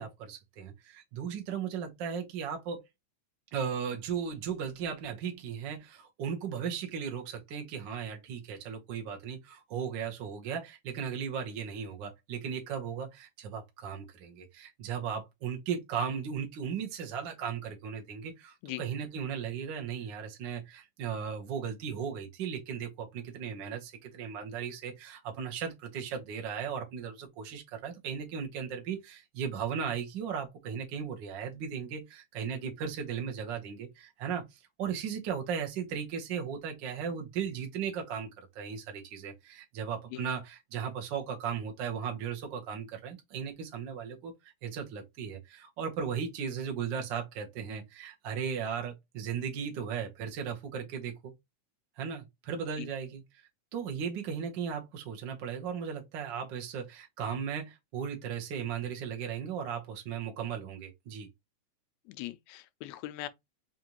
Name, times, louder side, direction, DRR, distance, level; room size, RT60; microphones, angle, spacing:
voice 1, 0.0-2.8 3.5-51.3 52.0-53.2 53.7-61.3, right 7 dB, 60° right, 1.2 m, -36 dB
voice 2, 62.1-63.3, left 15 dB, 80° left, 1.8 m, -40 dB
5.1 x 2.5 x 2.9 m
omnidirectional pair, 3.3 m